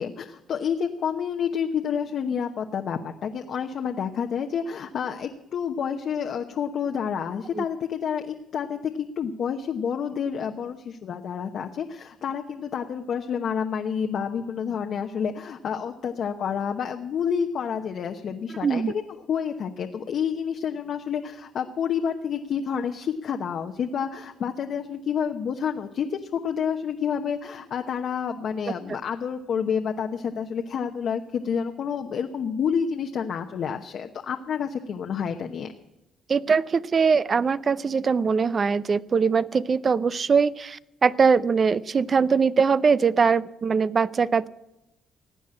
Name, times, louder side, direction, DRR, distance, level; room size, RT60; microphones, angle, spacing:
voice 1, 0.0-19.0 19.3-35.7, left 7 dB, 65° left, 4 dB, 1.0 m, -29 dB
voice 2, 18.6-18.9 36.3-44.5, right 5 dB, 40° right, 18 dB, 0.6 m, -22 dB
16.5 x 9.4 x 8.7 m, 0.95 s
cardioid pair, 90°, 0 cm